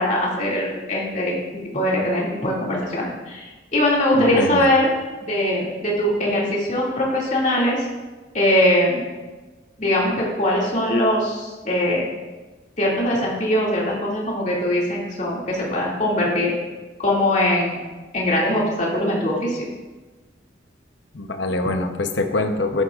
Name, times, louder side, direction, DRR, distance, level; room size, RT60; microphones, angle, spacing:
voice 1, 0.0-1.5 1.7-4.9 5.2-7.9 8.3-9.0 9.8-12.0 12.8-16.5 17.0-17.8 18.1-19.6, left 1 dB, 40° left, -4 dB, 2.4 m, -21 dB
voice 2, 4.2-4.7 21.1-22.8, left 2 dB, 70° left, 6 dB, 0.9 m, -24 dB
12.5 x 10.0 x 2.5 m, 1.3 s
head